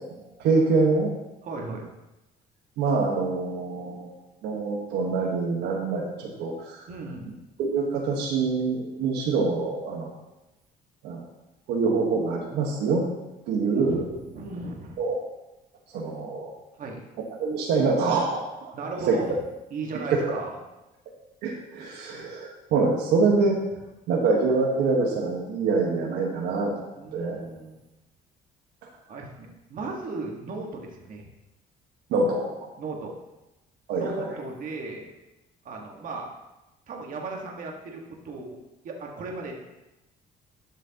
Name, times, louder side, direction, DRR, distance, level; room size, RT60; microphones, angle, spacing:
voice 1, 0.4-1.1 2.8-4.1 4.4-6.8 7.6-10.1 11.0-11.2 11.7-13.0 13.5-14.1 15.0-15.1 15.9-16.5 17.4-18.7 19.1-19.2 20.1-20.2 21.4-23.6 24.1-26.7 27.1-27.4 32.1-32.7 33.9-34.4, right 4 dB, 85° right, 0 dB, 1.4 m, -25 dB
voice 2, 1.4-1.8 6.9-7.4 13.7-15.0 16.8-17.1 18.7-19.4 19.7-20.5 27.0-27.8 29.1-31.3 32.8-33.1 33.9-35.1 35.6-36.3 36.9-38.6 38.8-39.6, right 3 dB, 55° right, 0 dB, 1.6 m, -36 dB
11.5 x 6.3 x 2.9 m, 0.97 s
cardioid pair, 110°, 17 cm